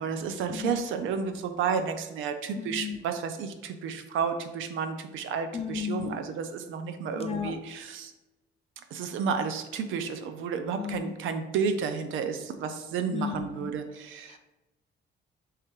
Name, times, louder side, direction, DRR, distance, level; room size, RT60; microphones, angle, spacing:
voice 1, 0.0-8.1 8.9-14.4, right 6 dB, 80° right, 7 dB, 0.5 m, -31 dB
voice 2, 2.6-3.0 5.5-6.2 7.2-7.5 10.8-11.1 13.1-13.7 14.3-14.4, left 7 dB, 30° left, 5 dB, 0.5 m, -34 dB
3.3 x 3.3 x 4.5 m, 1.0 s
cardioid pair, 90°, 20 cm